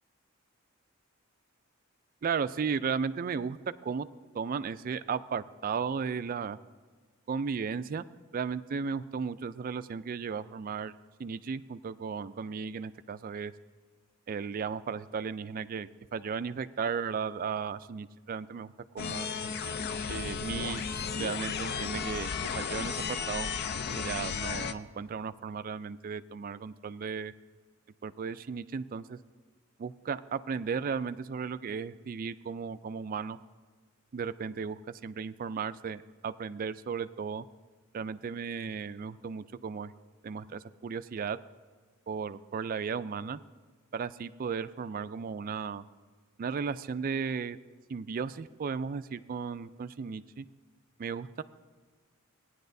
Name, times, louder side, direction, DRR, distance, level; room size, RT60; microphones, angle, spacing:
voice 1, 2.2-3.6 3.8-4.1 4.3-6.6 7.3-8.0 8.3-10.9 11.2-13.5 14.3-19.3 20.1-20.8 21.2-23.5 24.0-27.3 28.0-29.2 29.8-33.4 34.1-37.5 37.9-39.9 40.2-41.4 42.1-43.4 43.9-45.8 46.4-47.6 47.9-50.5 51.0-51.4, right 6 dB, 40° right, 13 dB, 0.3 m, -35 dB
sound 1, 19.0-24.7, left 5 dB, 50° left, 0.4 m, -34 dB
17.0 x 10.0 x 2.6 m, 1.5 s
head